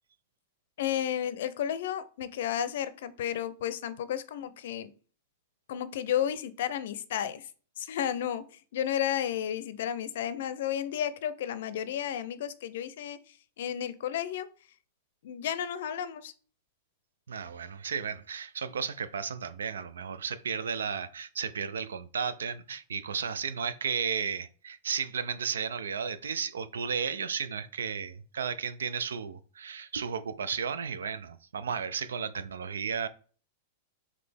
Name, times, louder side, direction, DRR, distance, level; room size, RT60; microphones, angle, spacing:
voice 1, 0.8-4.9 5.7-7.5 7.8-13.2 13.6-14.5 15.2-16.3, left 10 dB, 70° left, 0.5 m, -32 dB
voice 2, 17.3-33.1, right 6 dB, 85° right, 0.4 m, -34 dB
4.0 x 3.1 x 3.4 m
hypercardioid pair, 115°, 0 cm